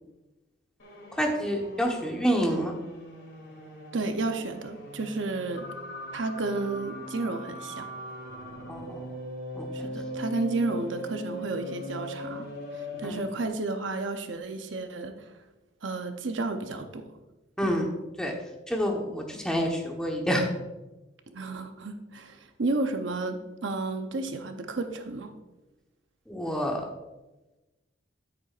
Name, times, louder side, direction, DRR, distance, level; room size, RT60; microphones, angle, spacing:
sound 1, 0.8-13.5, equal, 70° left, 2.8 m, -40 dB
voice 1, 1.2-2.7 8.7-9.0 9.5-9.7 13.0-13.2 17.6-17.9 18.2-18.3 18.7-20.5 26.3-26.8, equal, 5° left, 0 dB, 1.0 m, -27 dB
voice 2, 3.9-5.7 6.1-7.9 9.7-15.3 15.8-17.1 21.3-25.3, right 3 dB, 80° right, 7 dB, 0.8 m, -32 dB
9.6 x 8.8 x 2.5 m, 1.1 s
head